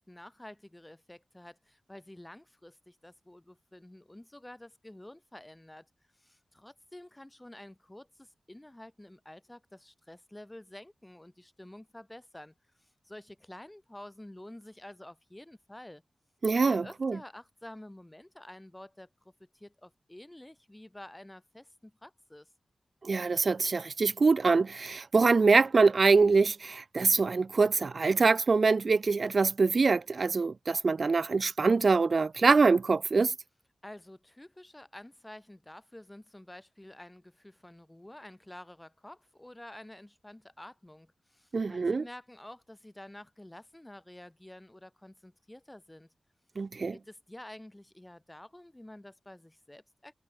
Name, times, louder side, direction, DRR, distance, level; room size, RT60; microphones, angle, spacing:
voice 1, 0.0-5.9 6.2-12.5 12.8-16.0 16.6-22.5 33.8-46.1 46.9-50.1, left 1 dB, 15° left, 4.4 m, -50 dB
voice 2, 16.4-17.2 23.0-33.3 41.5-42.0 46.6-46.9, right 4 dB, 65° right, 0.5 m, -24 dB
cardioid pair, 50°, 0 cm